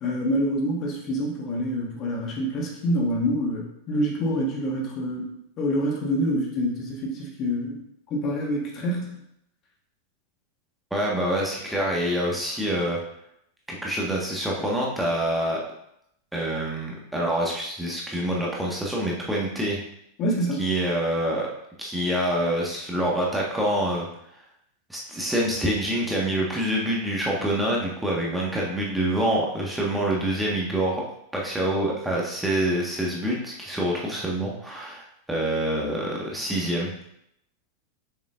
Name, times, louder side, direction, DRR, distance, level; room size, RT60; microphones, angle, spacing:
voice 1, 0.0-7.8 8.1-9.2 20.2-20.6, equal, 35° left, -1 dB, 1.4 m, -26 dB
voice 2, 10.9-13.0 13.7-15.6 16.3-19.8 20.6-21.5 21.8-24.1 24.9-31.0 31.3-36.9, right 1 dB, 5° right, -3 dB, 1.4 m, -26 dB
7.1 x 6.5 x 2.5 m, 0.76 s
figure-of-eight pair, 90°, 0 cm